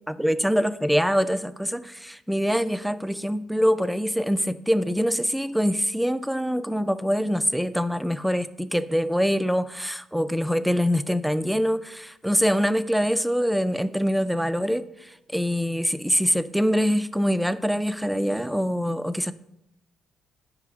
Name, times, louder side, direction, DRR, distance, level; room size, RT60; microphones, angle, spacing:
voice 1, 0.1-19.3, equal, ahead, 14 dB, 0.4 m, -24 dB
5.7 x 4.9 x 4.7 m, 0.87 s
supercardioid pair, 60°, 0 cm